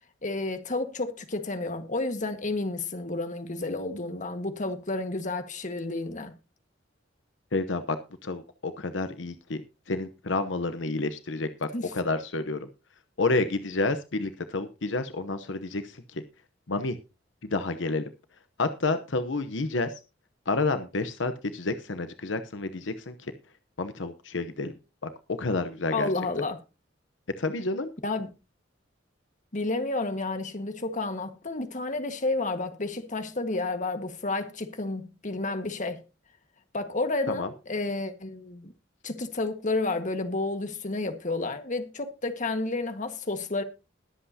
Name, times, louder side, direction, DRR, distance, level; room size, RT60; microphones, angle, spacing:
voice 1, 0.2-6.3 11.7-11.9 25.9-26.6 28.0-28.3 29.5-36.0 36.7-38.7 39.0-43.6, left 2 dB, 45° left, 1.7 m, -31 dB
voice 2, 7.5-8.0 8.2-9.6 9.9-12.7 13.2-16.2 16.7-17.0 17.4-18.1 18.6-19.9 20.5-23.3 23.8-24.7 25.0-26.1 27.4-27.9 37.3-37.5, left 3 dB, 80° left, 0.9 m, -29 dB
21.0 x 7.9 x 2.8 m
head